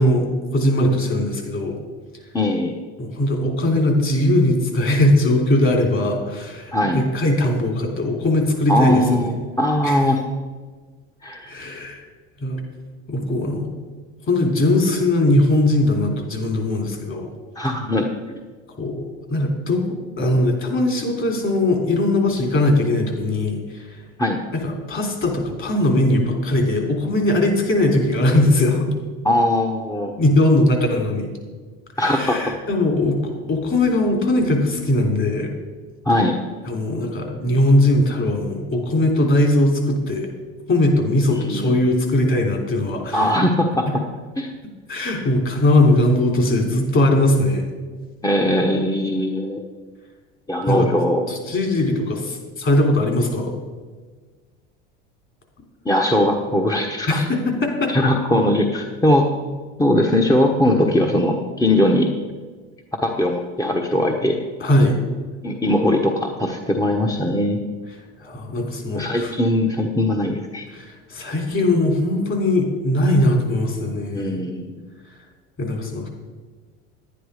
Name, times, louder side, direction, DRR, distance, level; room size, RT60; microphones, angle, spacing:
voice 1, 0.0-1.8 3.0-9.3 9.8-10.0 11.5-12.0 12.4-12.6 13.1-13.7 14.3-17.3 18.8-24.0 24.5-28.9 30.2-31.3 32.0-35.5 36.7-40.3 40.7-43.4 43.9-44.0 44.9-47.7 50.7-50.9 51.3-53.6 57.1-58.0 64.6-65.0 68.2-69.3 70.7-74.4 75.6-76.1, left 1 dB, 40° left, 2 dB, 3.5 m, -20 dB
voice 2, 2.3-2.7 6.7-7.0 8.7-10.2 11.2-11.5 17.5-18.1 24.2-24.4 29.2-30.1 32.0-32.5 36.0-36.4 41.3-41.8 43.1-43.8 44.4-44.5 48.2-49.6 50.5-51.3 55.8-57.2 57.9-59.3 59.8-62.1 63.0-64.4 65.4-67.6 68.9-70.7 74.1-74.8, left 1 dB, 10° left, 1 dB, 1.1 m, -20 dB
10.5 x 10.0 x 5.0 m, 1.4 s
supercardioid pair, 95°, 32 cm